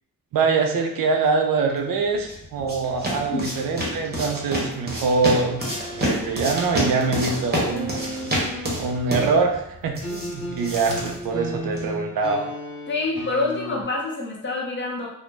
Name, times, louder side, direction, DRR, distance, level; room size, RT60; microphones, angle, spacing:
voice 1, 0.3-5.6 5.9-8.4 8.8-12.4, right 4 dB, 90° right, 3 dB, 0.5 m, -24 dB
sound 1, 1.9-12.0, equal, 30° right, 0.8 m, -29 dB
sound 2, 5.6-9.1 10.0-13.8, equal, 65° left, 1.0 m, -35 dB
voice 2, 12.9-15.1, left 3 dB, 35° left, -2 dB, 0.7 m, -26 dB
2.3 x 2.0 x 3.2 m, 0.80 s
cardioid pair, 80°, 33 cm